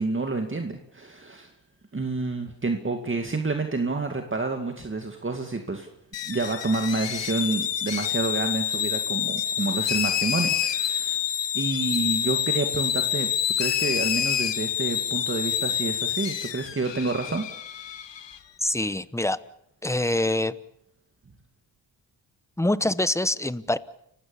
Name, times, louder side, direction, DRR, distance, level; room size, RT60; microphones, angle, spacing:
voice 1, 0.0-1.5 1.9-5.9 6.2-11.2 11.5-13.3 13.6-17.4, right 3 dB, 30° right, 5 dB, 2.3 m, -29 dB
sound 1, 6.1-18.4, left 9 dB, 80° left, 1.6 m, -27 dB
voice 2, 18.6-19.4 19.8-20.5 22.6-23.8, left 1 dB, 5° left, 16 dB, 1.0 m, -25 dB
29.5 x 16.5 x 7.1 m, 0.77 s
cardioid pair, 80°, 43 cm